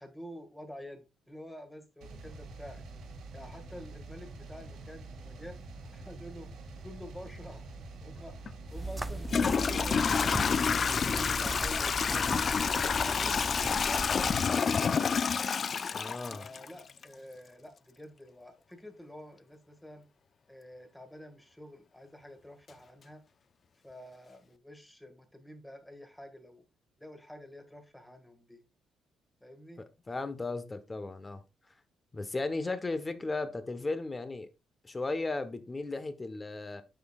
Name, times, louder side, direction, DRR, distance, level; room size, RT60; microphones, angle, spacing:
voice 1, 0.0-2.8 3.3-5.6 5.9-6.5 6.8-7.7 8.0-8.3 8.7-10.4 10.9-12.2 12.7-15.2 16.3-20.1 20.5-23.2 23.8-26.6 27.0-28.6 29.4-29.8, left 1 dB, 5° left, 1.8 m, -48 dB
sound 1, 2.0-10.1, right 3 dB, 80° right, 2.4 m, -46 dB
Toilet flush / Trickle dribble, 8.5-8.6 9.2-17.0, left 6 dB, 45° left, 0.4 m, -28 dB
sound 2, 8.7-14.5, right 2 dB, 10° right, 0.5 m, -38 dB
voice 2, 15.9-16.5 30.1-31.4 32.1-34.5 34.8-36.8, left 3 dB, 25° left, 1.1 m, -35 dB
9.3 x 6.2 x 2.4 m
cardioid pair, 90°, 0 cm